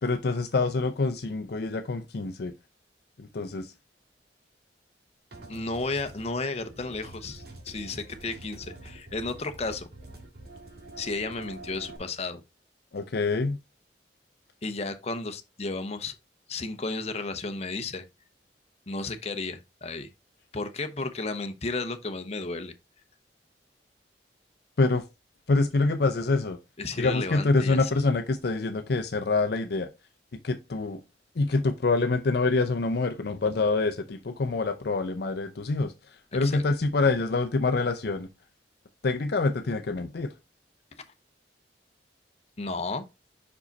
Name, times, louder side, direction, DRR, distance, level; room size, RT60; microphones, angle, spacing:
voice 1, 0.0-2.5 3.2-3.7 12.9-13.6 24.8-25.0 25.5-26.6 27.0-29.9 30.4-31.0 31.4-35.9 36.3-38.3 39.0-40.3, left 3 dB, 65° left, 0.6 m, -26 dB
sound 1, 5.3-12.0, right 2 dB, 60° right, 1.8 m, -46 dB
voice 2, 5.5-9.9 11.0-12.4 14.6-16.1 16.5-18.1 18.9-20.1 20.5-22.7 26.8-27.9 31.5-31.6 36.3-36.6 42.6-43.0, left 3 dB, 35° left, 0.8 m, -33 dB
5.5 x 4.9 x 4.0 m
head